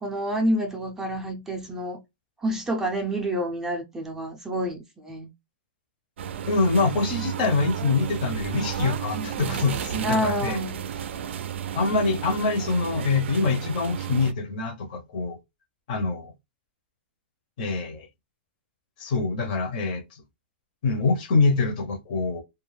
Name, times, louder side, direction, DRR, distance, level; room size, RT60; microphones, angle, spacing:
voice 1, 0.0-2.0 2.4-5.3 9.2-9.7 10.0-10.7, right 1 dB, 10° right, 0.4 m, -28 dB
sound 1, 6.2-14.3, right 9 dB, 80° right, 0.3 m, -32 dB
voice 2, 6.5-10.6 11.7-15.4 15.9-16.3 17.6-18.1 19.0-20.2 20.8-22.4, left 3 dB, 50° left, 0.6 m, -25 dB
2.2 x 2.1 x 3.1 m
hypercardioid pair, 160°, 6 cm